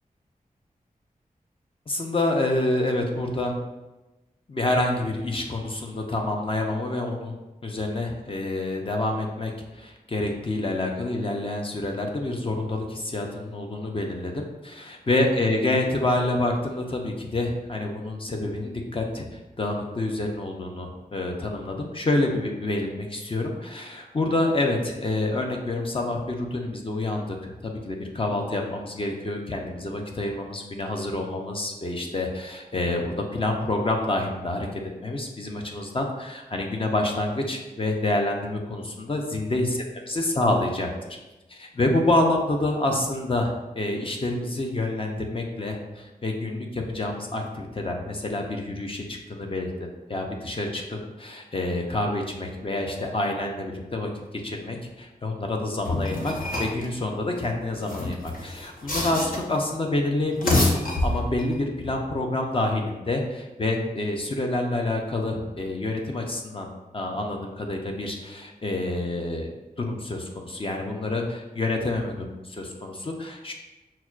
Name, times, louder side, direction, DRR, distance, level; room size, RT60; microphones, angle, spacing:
voice 1, 1.9-3.5 4.5-7.3 7.6-39.8 40.1-40.9 41.5-66.7 66.9-73.5, left 2 dB, 40° left, 1 dB, 0.5 m, -28 dB
sound 1, 55.8-56.8 57.7-59.6 60.2-61.5, left 2 dB, 70° left, 0.7 m, -26 dB
5.7 x 2.1 x 2.3 m, 1.1 s
wide cardioid pair, 70°, 15 cm